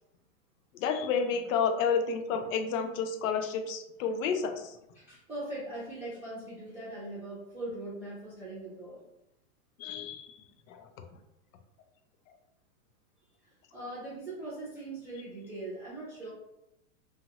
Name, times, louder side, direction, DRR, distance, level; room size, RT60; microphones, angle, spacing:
voice 1, 0.7-4.8 9.8-10.4 10.7-10.9, left 6 dB, 70° left, 6 dB, 0.5 m, -30 dB
voice 2, 4.9-9.0 13.4-16.3, right 2 dB, 5° right, -12 dB, 0.6 m, -41 dB
2.8 x 2.4 x 2.8 m, 0.87 s
hypercardioid pair, 145°, 42 cm